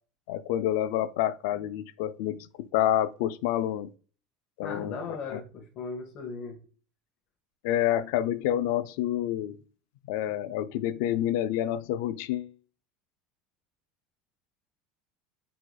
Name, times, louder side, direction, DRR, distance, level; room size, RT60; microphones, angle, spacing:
voice 1, 0.3-3.9 4.6-5.4 7.6-9.6 10.1-12.5, left 12 dB, 75° left, 0.3 m, -28 dB
voice 2, 4.6-6.6, left 4 dB, 45° left, 0.9 m, -37 dB
4.6 x 4.1 x 2.3 m
supercardioid pair, 145°, 0 cm